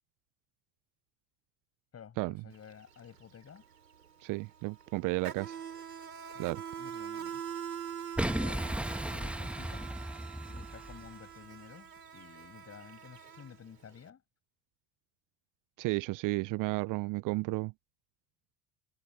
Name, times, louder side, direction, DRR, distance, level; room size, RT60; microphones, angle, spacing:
voice 1, 1.9-3.6 6.3-7.4 8.2-9.9 10.5-14.2, left 8 dB, 30° left, 6.0 m, -52 dB
Insect, 2.5-2.7 3.0-14.0, right 8 dB, 80° right, 5.4 m, -44 dB
voice 2, 4.2-5.6 6.4-6.6 15.8-17.7, right 24 dB, 40° right, 0.7 m, -33 dB
Boom, 8.2-11.1, right 1 dB, 5° right, 2.4 m, -35 dB
figure-of-eight pair, 65°, 47 cm